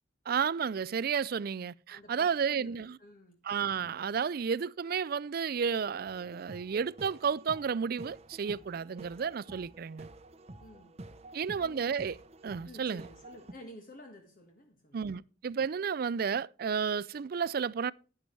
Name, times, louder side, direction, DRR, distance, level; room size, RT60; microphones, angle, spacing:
voice 1, 0.3-3.0 3.4-10.1 11.3-12.2 12.4-13.1 14.9-17.9, right 6 dB, 50° right, 0.4 m, -32 dB
voice 2, 1.9-3.3 10.6-11.0 11.5-11.8 12.6-15.0, left 1 dB, 50° left, 1.7 m, -51 dB
sound 1, 6.1-13.5, right 2 dB, 35° right, 0.8 m, -50 dB
11.5 x 10.0 x 3.2 m
head